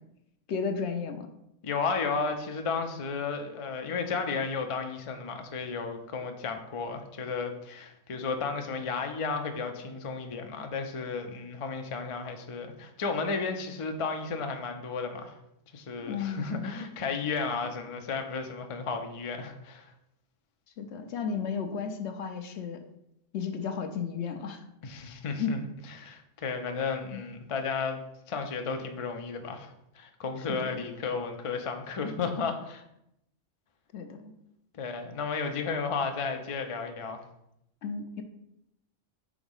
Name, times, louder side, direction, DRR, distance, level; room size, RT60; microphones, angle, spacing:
voice 1, 0.5-1.3 16.0-16.7 20.8-22.8 23.3-24.6 25.4-25.6 27.1-27.2 30.6-30.8 33.9-34.3 37.8-38.2, left 6 dB, 65° left, 7 dB, 0.9 m, -33 dB
voice 2, 1.6-15.4 15.7-19.9 24.8-25.7 25.9-28.0 28.3-32.8 34.7-37.2, left 4 dB, 40° left, 5 dB, 0.4 m, -33 dB
4.9 x 3.9 x 5.4 m, 0.81 s
omnidirectional pair, 1.3 m